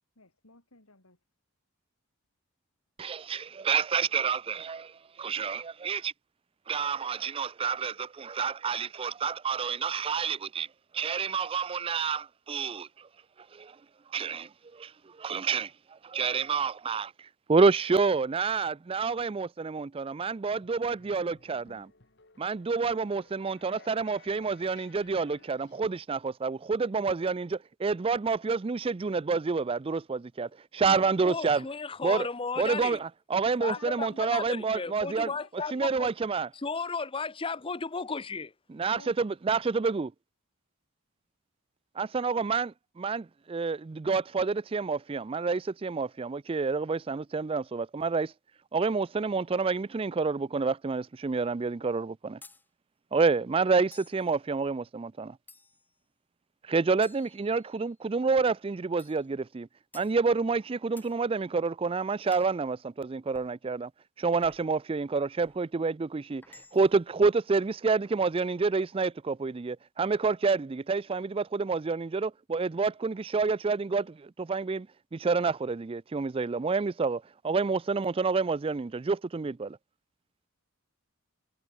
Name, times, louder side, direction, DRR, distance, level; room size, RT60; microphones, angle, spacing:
voice 1, 0.2-1.2 33.8-34.4 35.1-36.0 38.9-39.3, left 3 dB, 75° left, 5.7 m, -51 dB
voice 2, 3.0-4.9 5.2-6.1 6.7-10.7 10.9-12.9 13.5-13.7 14.1-14.9 15.2-15.7 16.0-17.1 17.5-21.9 22.4-31.6 32.0-32.3 32.6-35.3 35.7-36.5 38.7-40.1 42.0-48.3 48.7-52.4 53.1-55.4 56.7-59.7 59.9-63.9 64.2-66.4 66.7-74.9 75.1-79.8, right 4 dB, 25° right, 0.4 m, -28 dB
sound 1, 20.5-26.0, left 4 dB, 50° left, 3.8 m, -58 dB
voice 3, 31.2-33.0 33.6-35.7 36.0-36.1 36.5-38.5, left 4 dB, 25° left, 0.7 m, -34 dB
sound 2, 52.4-52.7 53.9-54.3 55.5-55.9 57.0-57.9 59.0-59.3 59.9-60.2 61.0-61.2 62.3-62.6 63.3-63.6 64.4-64.8 65.4-65.6 66.4-67.0, left 3 dB, 10° left, 1.9 m, -54 dB
head